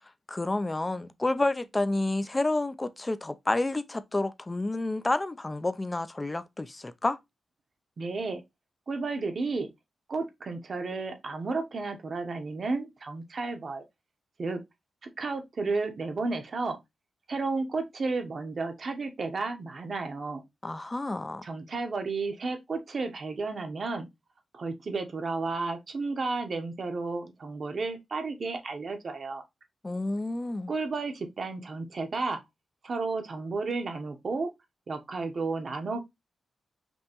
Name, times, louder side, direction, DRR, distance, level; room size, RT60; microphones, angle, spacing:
voice 1, 0.3-7.2 20.6-21.4 29.8-30.7, left 2 dB, 20° left, 0.4 m, -29 dB
voice 2, 8.0-8.4 8.9-9.7 10.1-13.8 14.4-14.6 15.2-16.8 17.3-20.4 21.4-24.1 24.5-29.4 30.7-32.4 32.8-34.5 34.9-36.0, right 3 dB, 45° right, 0.8 m, -32 dB
5.3 x 2.9 x 2.9 m
wide cardioid pair, 125°, 0 cm